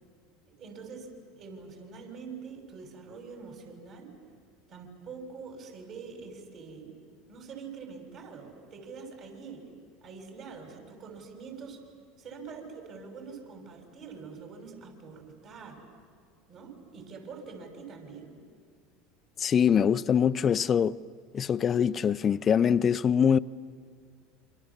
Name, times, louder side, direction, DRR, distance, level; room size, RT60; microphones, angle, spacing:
voice 1, 0.5-4.1 4.7-7.0 7.3-9.7 10.0-11.8 12.2-15.8 16.5-18.4, right 5 dB, 50° right, 6.5 m, -45 dB
voice 2, 19.4-21.0 21.3-23.4, left 7 dB, 35° left, 0.6 m, -23 dB
28.0 x 26.0 x 7.4 m
hypercardioid pair, 80°, 0 cm